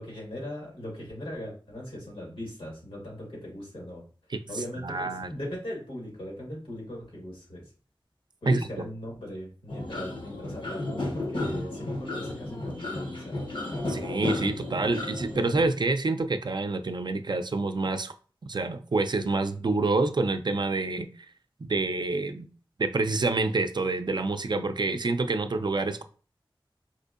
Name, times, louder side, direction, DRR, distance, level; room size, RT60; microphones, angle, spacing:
voice 1, 0.0-4.0 4.5-7.6 8.4-13.3, equal, 90° left, -2 dB, 1.6 m, -39 dB
voice 2, 4.8-5.3 8.5-8.6 13.9-18.1 18.5-21.1 21.6-22.5 22.8-26.0, right 3 dB, 55° right, 8 dB, 0.4 m, -27 dB
sound 1, 9.7-15.7, left 2 dB, 65° left, 0.8 m, -33 dB
4.2 x 2.6 x 2.5 m, 0.38 s
wide cardioid pair, 40°, 9 cm